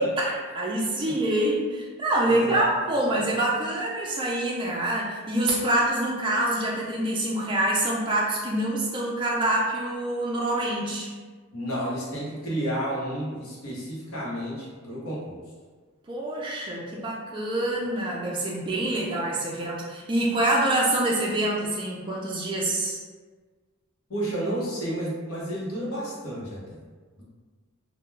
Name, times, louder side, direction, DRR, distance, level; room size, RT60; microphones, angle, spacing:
voice 1, 0.0-11.1 16.1-23.0, right 1 dB, 20° right, -3 dB, 0.3 m, -26 dB
voice 2, 2.2-2.7 11.5-15.4 24.1-26.8 27.2-27.3, right 1 dB, 75° left, -6 dB, 0.8 m, -31 dB
2.2 x 2.1 x 3.1 m, 1.4 s
head